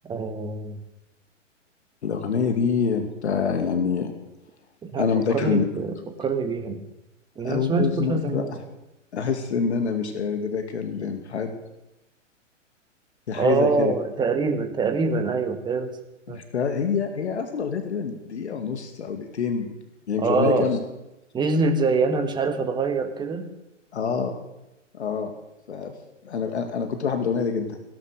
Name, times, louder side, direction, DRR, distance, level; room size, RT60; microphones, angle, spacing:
voice 1, 0.0-0.8 4.8-6.8 7.4-8.5 13.3-16.0 16.3-16.4 20.2-20.7 21.3-23.5, right 4 dB, 10° right, 7 dB, 1.5 m, -25 dB
voice 2, 2.0-4.1 5.0-5.7 7.4-8.6 9.1-11.6 13.3-13.9 16.3-19.7 20.1-20.8 23.9-24.4 24.9-25.3 25.7-25.9 26.2-27.8, left 6 dB, 60° left, 6 dB, 2.2 m, -26 dB
17.5 x 12.0 x 6.6 m, 0.95 s
figure-of-eight pair, 115°, 38 cm